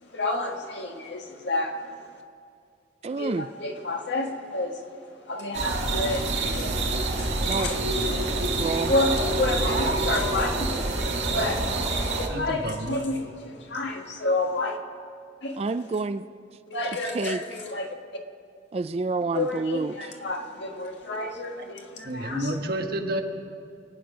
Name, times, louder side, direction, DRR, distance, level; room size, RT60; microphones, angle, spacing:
voice 1, 0.1-1.8 3.1-4.8 5.3-6.7 7.2-7.7 8.9-11.9 12.2-14.8 15.4-15.6 16.7-17.9 19.3-22.6, left 2 dB, 75° left, 2 dB, 1.7 m, -30 dB
voice 2, 3.0-3.5 7.5-7.7 8.2-8.9 15.6-16.2 16.8-17.6 18.7-20.2, right 3 dB, 35° right, 12 dB, 0.3 m, -29 dB
sound 1, 5.5-12.3, right 2 dB, 80° right, 1.9 m, -26 dB
voice 3, 12.3-13.0 22.0-23.2, right 1 dB, 55° right, 4 dB, 1.3 m, -30 dB
26.0 x 9.6 x 5.2 m, 2.4 s
head